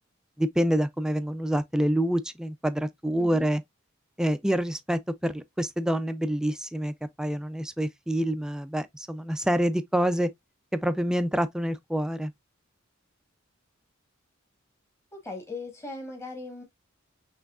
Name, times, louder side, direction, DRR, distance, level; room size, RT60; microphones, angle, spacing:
voice 1, 0.4-3.6 4.2-6.9 7.2-10.3 10.7-12.3, equal, 5° right, 0.4 m, -27 dB
voice 2, 3.2-3.5 15.1-16.6, left 2 dB, 15° left, 1.2 m, -39 dB
5.8 x 3.1 x 2.3 m
head